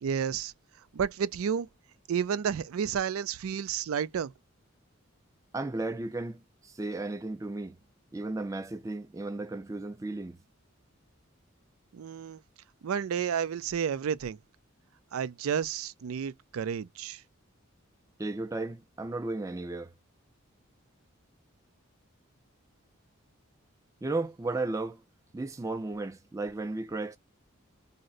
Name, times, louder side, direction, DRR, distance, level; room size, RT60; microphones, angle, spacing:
voice 1, 0.0-0.5 0.9-1.7 2.1-4.3 11.9-12.4 12.8-14.4 15.1-17.2, right 7 dB, 90° right, 0.4 m, -31 dB
voice 2, 5.5-7.7 8.1-10.4 18.2-19.9 24.0-25.0 25.3-27.2, right 2 dB, 15° right, 0.3 m, -34 dB
2.6 x 2.1 x 3.8 m
head